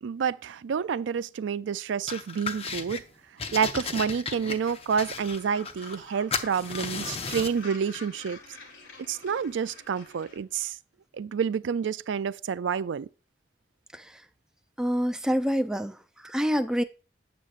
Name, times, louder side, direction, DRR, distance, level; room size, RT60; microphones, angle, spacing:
voice 1, 0.0-3.0 3.5-8.4 9.1-10.8 11.1-13.1, right 6 dB, 85° right, 0.4 m, -29 dB
sound 1, 2.1-3.0 3.4-6.1 6.3-7.6, left 5 dB, 35° left, 0.7 m, -35 dB
Gull seagull, 4.5-10.4, left 4 dB, 85° left, 1.8 m, -47 dB
voice 2, 14.8-16.0 16.2-16.8, equal, 5° right, 0.3 m, -26 dB
7.7 x 7.3 x 2.5 m
head